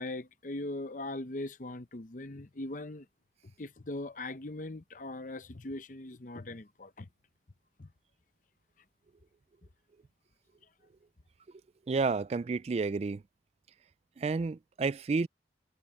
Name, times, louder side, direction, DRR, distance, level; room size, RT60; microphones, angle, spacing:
voice 1, 0.0-3.1 3.6-7.1 7.8-7.9, left 2 dB, 45° left, 0.8 m, -40 dB
voice 2, 11.9-13.2 14.2-15.3, right 4 dB, 35° right, 0.3 m, -30 dB
head